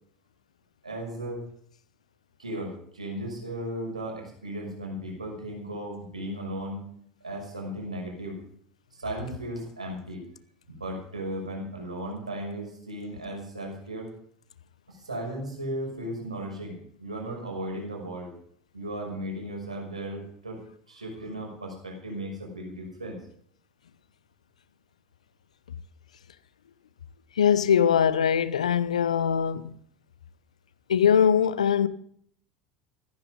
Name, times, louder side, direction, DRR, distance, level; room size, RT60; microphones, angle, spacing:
voice 1, 0.8-1.4 2.4-6.8 7.2-8.4 8.9-10.3 10.7-14.1 14.9-18.3 18.7-20.6 20.9-23.2, right 1 dB, 90° right, 6.0 m, -36 dB
voice 2, 27.4-29.8 30.9-31.9, left 8 dB, 80° left, 0.9 m, -22 dB
15.5 x 14.0 x 5.1 m
hypercardioid pair, 75°, 4 cm